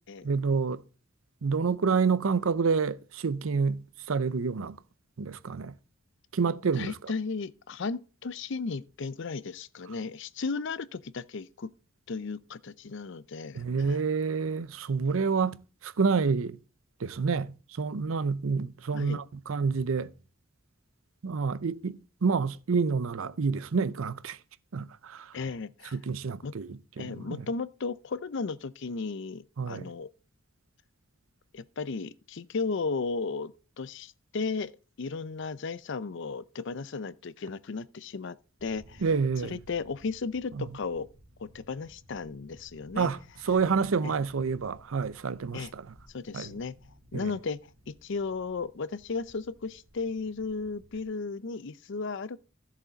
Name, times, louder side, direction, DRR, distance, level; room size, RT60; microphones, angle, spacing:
voice 1, 0.2-0.8 1.4-4.8 5.2-5.7 6.3-7.1 13.5-15.6 15.8-16.6 17.0-20.1 21.2-24.4 24.7-25.3 25.9-27.4 29.6-29.9 39.0-39.6 40.6-40.7 43.0-43.2 43.5-45.9 46.3-46.5 47.1-47.3, right 5 dB, 90° right, 0.6 m, -28 dB
voice 2, 6.7-11.7 12.1-14.0 18.9-19.3 25.3-26.0 26.4-26.5 27.0-30.1 31.5-34.7 35.0-39.0 39.4-41.1 41.4-43.1 44.0-44.1 45.5-45.7 46.1-52.4, left 4 dB, 60° left, 0.5 m, -35 dB
sound 1, 38.6-51.0, equal, 60° right, 3.1 m, -57 dB
13.5 x 7.4 x 4.0 m
head